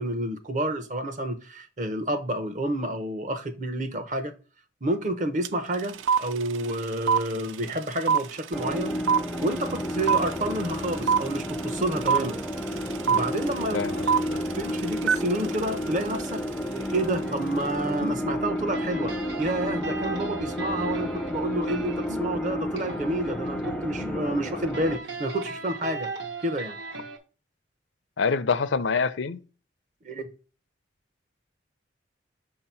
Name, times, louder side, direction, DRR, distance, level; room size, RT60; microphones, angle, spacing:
voice 1, 0.0-4.3 4.8-9.0 9.4-12.4 13.1-13.8 14.6-16.4 16.7-19.1 19.4-26.1 26.4-26.8 30.0-30.3, right 1 dB, 40° right, 0.7 m, -29 dB
sound 1, 5.4-5.5 5.7-16.9, right 6 dB, 80° right, 0.4 m, -26 dB
sound 2, 8.5-25.0, equal, 5° left, 0.4 m, -31 dB
voice 2, 13.7-14.4 28.2-29.4, left 5 dB, 75° left, 0.5 m, -26 dB
sound 3, 16.9-27.2, right 3 dB, 65° right, 1.0 m, -38 dB
5.9 x 2.9 x 5.6 m
head